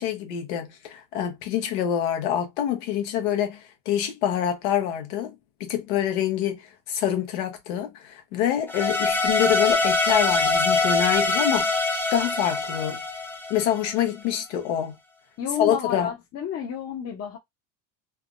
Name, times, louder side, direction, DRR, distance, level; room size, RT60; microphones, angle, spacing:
voice 1, 0.0-5.3 5.6-11.7 12.1-13.0 13.5-14.9 15.6-16.1, left 10 dB, 85° left, 1.0 m, -26 dB
sound 1, 8.7-13.9, left 3 dB, 5° left, 0.6 m, -23 dB
voice 2, 15.4-17.4, left 8 dB, 45° left, 0.8 m, -31 dB
3.3 x 2.0 x 2.5 m
supercardioid pair, 100°, 36 cm